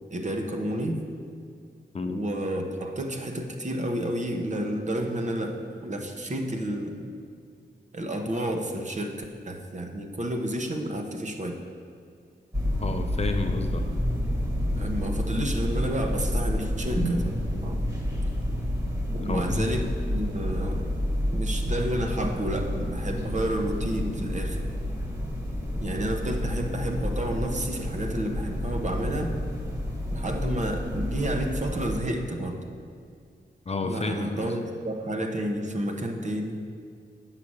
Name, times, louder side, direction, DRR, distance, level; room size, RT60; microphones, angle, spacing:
voice 1, 0.1-1.0 2.1-7.1 7.9-11.6 14.7-17.2 17.5-17.8 19.1-21.0 21.3-24.6 25.8-29.3 30.1-32.6 33.8-36.6, right 1 dB, 40° right, 3 dB, 1.0 m, -30 dB
sound 1, 12.5-32.0, equal, 15° right, 1.5 m, -29 dB
voice 2, 12.8-13.9 19.2-19.7 33.7-34.5, left 3 dB, 35° left, 5 dB, 0.5 m, -30 dB
8.3 x 5.8 x 6.3 m, 2.2 s
wide cardioid pair, 110°, 19 cm